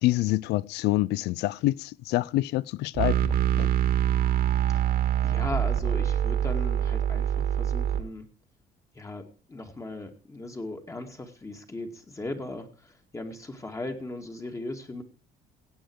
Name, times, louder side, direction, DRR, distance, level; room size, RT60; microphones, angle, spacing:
voice 1, 0.0-3.7, left 17 dB, 85° left, 0.5 m, -27 dB
sound 1, 3.0-8.0, right 10 dB, 65° right, 2.2 m, -25 dB
voice 2, 5.2-8.3 9.0-9.2 9.5-15.0, left 2 dB, 20° left, 2.1 m, -37 dB
17.0 x 8.0 x 4.7 m
cardioid pair, 110°, 17 cm